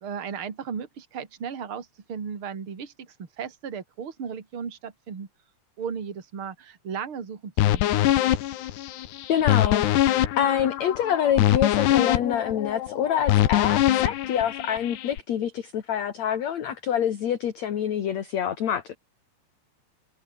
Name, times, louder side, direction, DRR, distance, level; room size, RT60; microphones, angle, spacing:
voice 1, 0.0-5.3 5.8-8.0, right 7 dB, 35° right, 3.4 m, -35 dB
sound 1, 7.6-15.2, left 13 dB, 85° left, 3.6 m, -23 dB
voice 2, 9.3-9.8 10.4-18.9, left 9 dB, 50° left, 2.6 m, -26 dB
omnidirectional pair, 4.8 m